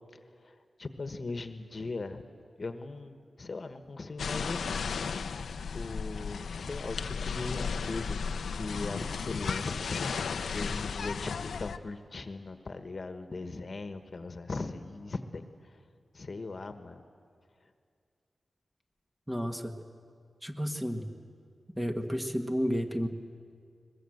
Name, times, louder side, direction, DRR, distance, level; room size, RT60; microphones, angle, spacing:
voice 1, 0.8-2.2 2.6-4.9 5.7-8.3 8.5-15.4 16.1-17.0, left 3 dB, 50° left, 8 dB, 1.3 m, -39 dB
sound 1, 4.2-11.8, left 5 dB, 90° left, 0.7 m, -34 dB
voice 2, 19.3-19.8 20.4-21.1 21.8-23.1, equal, 10° right, 4 dB, 1.6 m, -31 dB
22.0 x 21.0 x 7.9 m, 2.3 s
cardioid pair, 75°, 0 cm